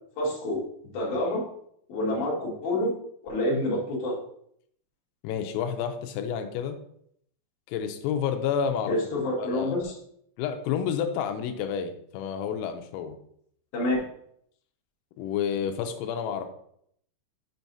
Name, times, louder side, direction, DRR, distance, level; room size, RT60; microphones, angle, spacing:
voice 1, 0.2-1.4 1.9-2.9 3.2-4.1 8.9-9.9 13.7-14.1, left 1 dB, 50° left, -5 dB, 2.6 m, -28 dB
voice 2, 5.2-6.8 7.7-9.0 9.4-9.9 10.4-13.2 15.2-16.5, left 8 dB, 90° left, 6 dB, 3.4 m, -30 dB
7.0 x 5.9 x 2.7 m, 0.68 s
omnidirectional pair, 5.9 m